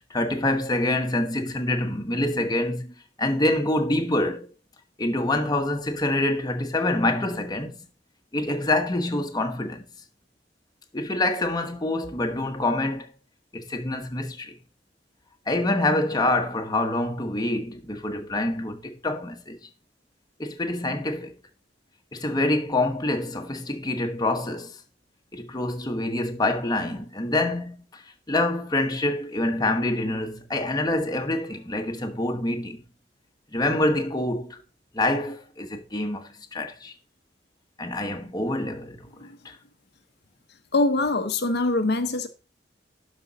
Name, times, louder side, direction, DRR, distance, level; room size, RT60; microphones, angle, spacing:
voice 1, 0.1-4.5 5.0-7.9 8.3-9.8 10.9-13.1 13.5-14.6 15.5-19.7 20.4-21.3 22.1-24.8 25.3-28.0 28.3-32.8 33.5-34.6 34.9-36.9 37.8-39.1 39.4-39.6, left 1 dB, 20° left, 1.1 m, -26 dB
voice 2, 40.7-42.3, left 2 dB, 60° left, 0.9 m, -23 dB
11.5 x 5.3 x 4.0 m
head